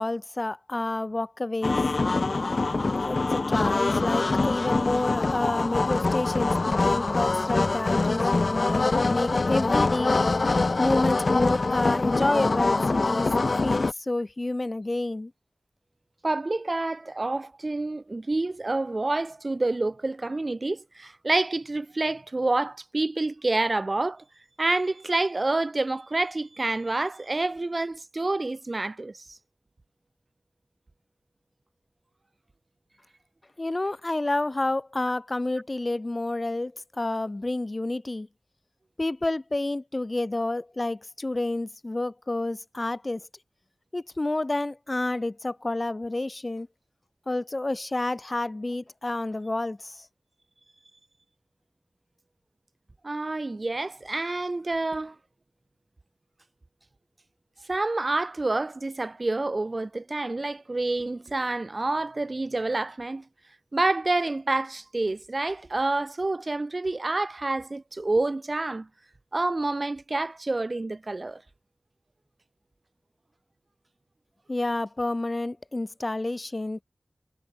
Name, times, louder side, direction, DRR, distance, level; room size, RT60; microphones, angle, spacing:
voice 1, 0.0-1.9 3.0-10.2 10.8-13.3 13.6-15.3 33.6-38.3 39.0-43.3 43.9-46.7 47.3-50.1 74.5-76.8, left 2 dB, 40° left, 7.2 m, -29 dB
sound 1, 1.6-13.9, left 3 dB, 65° left, 4.1 m, -24 dB
voice 2, 16.2-24.2 24.6-29.4 53.0-55.1 57.7-63.2 63.7-68.9 69.3-71.4, right 2 dB, 50° right, 6.0 m, -28 dB
wide cardioid pair, 45°, 0 cm